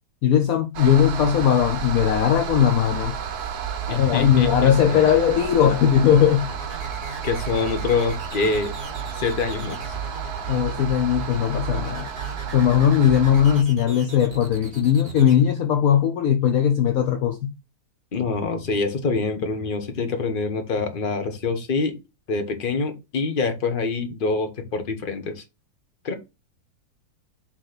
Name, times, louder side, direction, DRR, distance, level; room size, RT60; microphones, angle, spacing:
voice 1, 0.2-3.1 3.9-6.5 10.5-12.1 12.5-17.5, left 9 dB, 65° left, 1.0 m, -19 dB
sound 1, 0.7-13.6, right 7 dB, 70° right, 1.4 m, -31 dB
voice 2, 3.9-5.2 7.2-8.7 9.2-9.9 18.1-22.0 22.3-25.4 26.0-26.1, left 4 dB, 35° left, 1.2 m, -25 dB
sound 2, 4.9-15.3, right 1 dB, 55° right, 3.1 m, -39 dB
6.0 x 3.3 x 5.9 m
omnidirectional pair, 1.8 m